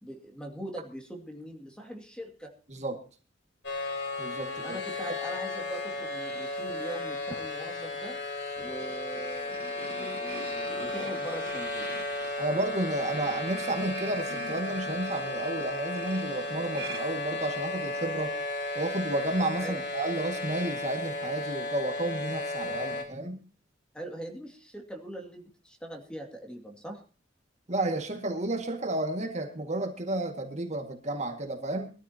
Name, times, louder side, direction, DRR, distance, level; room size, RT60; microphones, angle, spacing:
voice 1, 0.0-2.5 4.6-8.2 8.6-11.9 19.6-19.8 23.9-27.0, right 1 dB, 5° left, 2 dB, 2.4 m, -41 dB
voice 2, 2.7-3.0 4.2-4.6 12.4-18.4 18.8-23.4 27.7-31.9, right 2 dB, 40° right, 4 dB, 2.0 m, -32 dB
sound 1, 3.6-23.0, left 2 dB, 65° left, 3.4 m, -34 dB
sound 2, 8.6-17.9, right 4 dB, 60° right, 1.6 m, -45 dB
22.5 x 13.5 x 2.9 m, 0.36 s
head